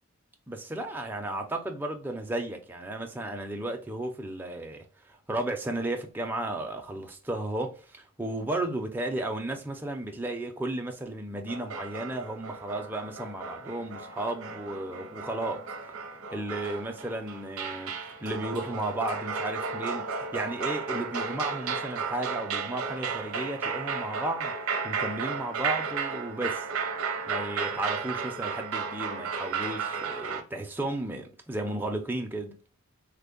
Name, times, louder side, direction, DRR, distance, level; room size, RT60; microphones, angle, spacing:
voice 1, 0.5-15.6 16.3-17.9 18.2-26.7 27.3-32.6, right 1 dB, 10° right, 0.4 m, -34 dB
sound 1, 11.5-30.4, right 5 dB, 70° right, 0.6 m, -34 dB
3.3 x 2.1 x 3.7 m
head